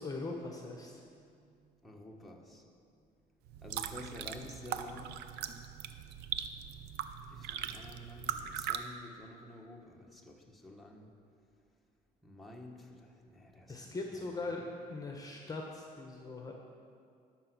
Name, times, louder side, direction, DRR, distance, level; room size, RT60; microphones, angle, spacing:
voice 1, 0.0-0.9 13.7-14.6 14.9-16.5, left 3 dB, 20° left, 1 dB, 1.0 m, -40 dB
voice 2, 0.8-2.6 3.0-3.1 3.6-5.2 7.2-11.1 12.2-14.0, left 1 dB, ahead, -1 dB, 1.2 m, -51 dB
sound 1, 3.5-8.8, right 9 dB, 75° right, 0.6 m, -40 dB
12.0 x 6.0 x 6.1 m, 2.3 s
cardioid pair, 110°, 17 cm